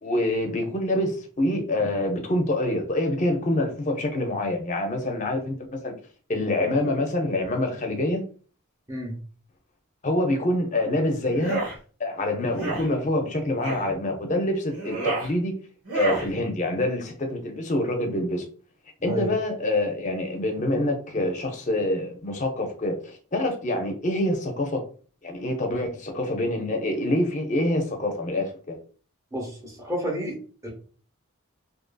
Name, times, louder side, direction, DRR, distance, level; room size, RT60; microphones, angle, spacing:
voice 1, 0.0-5.9 6.3-8.2 10.0-11.6 12.0-15.5 15.9-18.5 19.0-24.8 25.2-28.8, left 1 dB, 35° left, 0.5 m, -26 dB
voice 2, 8.9-9.2 19.0-19.3 29.3-30.7, equal, 15° right, 0.7 m, -31 dB
sound 1, 11.3-11.7 12.5-12.9 13.6-13.9 14.7-15.3 15.8-16.3, right 3 dB, 85° right, 1.2 m, -29 dB
2.7 x 2.5 x 2.2 m
head